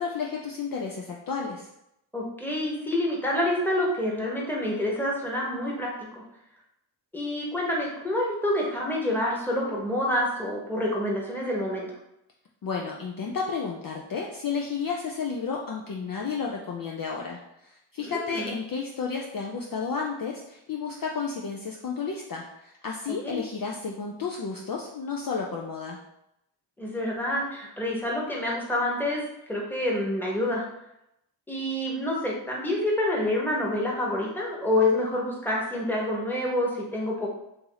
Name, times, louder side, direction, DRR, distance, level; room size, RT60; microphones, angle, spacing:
voice 1, 0.0-1.7 12.6-26.0, left 5 dB, 45° left, -1 dB, 0.5 m, -32 dB
voice 2, 2.1-6.2 7.1-11.9 18.0-18.5 23.2-23.4 26.8-29.2 29.5-30.6 31.5-37.3, left 1 dB, 5° left, -3 dB, 1.1 m, -27 dB
2.9 x 2.7 x 3.8 m, 0.82 s
cardioid pair, 60°, 47 cm